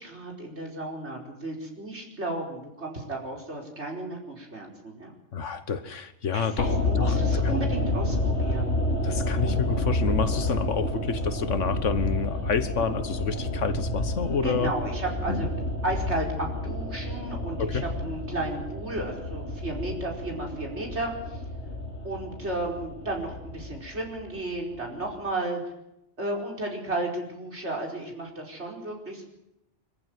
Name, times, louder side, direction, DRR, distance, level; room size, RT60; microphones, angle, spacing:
voice 1, 0.0-5.1 6.3-8.8 14.4-15.5 15.8-21.4 22.0-25.6 26.2-29.2, right 2 dB, 65° right, 0 dB, 5.2 m, -33 dB
voice 2, 5.3-7.6 9.0-14.7 15.3-15.5 17.6-17.8, left 6 dB, 90° left, 12 dB, 1.7 m, -29 dB
sound 1, 6.6-24.8 25.0-25.1, left 1 dB, 70° left, 2.9 m, -29 dB
25.0 x 15.0 x 9.4 m, 0.85 s
omnidirectional pair, 1.2 m